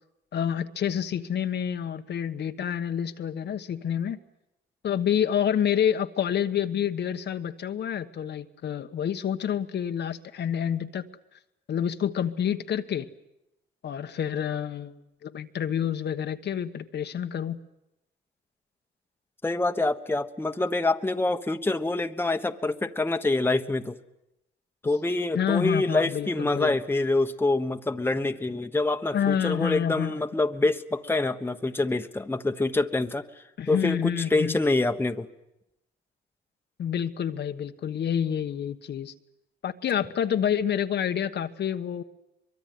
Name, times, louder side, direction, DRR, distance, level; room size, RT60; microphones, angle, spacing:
voice 1, 0.3-4.2 4.8-11.1 11.7-13.1 13.8-17.6 25.3-26.8 29.1-30.2 33.6-34.6 36.8-39.1 39.6-42.0, left 9 dB, 60° left, 8 dB, 1.2 m, -28 dB
voice 2, 19.4-24.0 24.8-33.2 33.7-35.3, left 2 dB, 10° left, 7 dB, 1.2 m, -26 dB
23.5 x 23.0 x 9.4 m, 0.89 s
cardioid pair, 90°, 20 cm